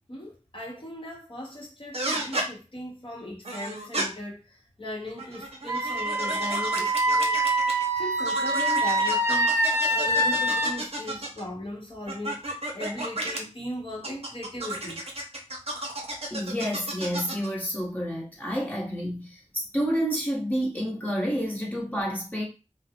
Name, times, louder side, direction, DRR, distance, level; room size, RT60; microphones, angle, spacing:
voice 1, 0.0-7.4 7.9-9.7 9.9-12.4 12.7-15.1, left 1 dB, 45° left, 0.9 m, -38 dB
sound 1, 1.9-2.5 3.4-4.1 5.1-7.9 8.2-11.4 12.1-13.4 14.0-17.5, right 1 dB, 55° right, 0.6 m, -33 dB
Wind instrument woodwind instrument, 5.7-10.7, right 1 dB, 20° right, 0.6 m, -25 dB
voice 2, 16.3-22.4, equal, 15° left, 0.9 m, -29 dB
2.5 x 2.0 x 2.7 m
wide cardioid pair, 45°, 12 cm